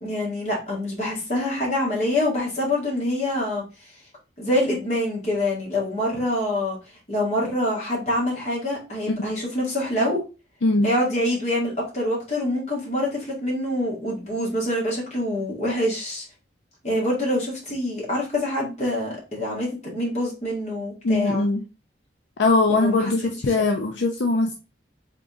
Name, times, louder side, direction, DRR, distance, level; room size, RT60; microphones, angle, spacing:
voice 1, 0.0-3.6 4.4-6.8 7.1-10.2 10.8-16.2 16.8-21.5 22.7-23.3, left 1 dB, 35° left, -4 dB, 2.0 m, -25 dB
voice 2, 21.0-21.6 22.4-24.5, left 3 dB, 80° left, 4 dB, 0.5 m, -21 dB
3.9 x 3.7 x 3.6 m, 0.31 s
head